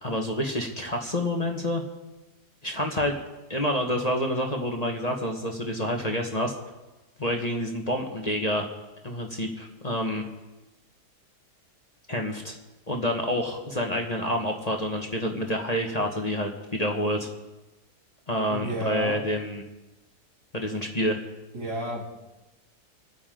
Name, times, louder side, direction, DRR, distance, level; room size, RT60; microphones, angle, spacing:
voice 1, 0.0-1.8 2.6-3.1 3.5-6.5 7.2-8.7 9.0-10.2 12.1-12.6 12.9-17.3 18.3-19.6 20.5-21.2, left 1 dB, 25° left, 2 dB, 1.4 m, -28 dB
voice 2, 18.5-19.2 21.5-22.1, right 1 dB, 80° right, -3 dB, 3.9 m, -31 dB
27.0 x 9.8 x 3.9 m, 1.1 s
omnidirectional pair, 1.7 m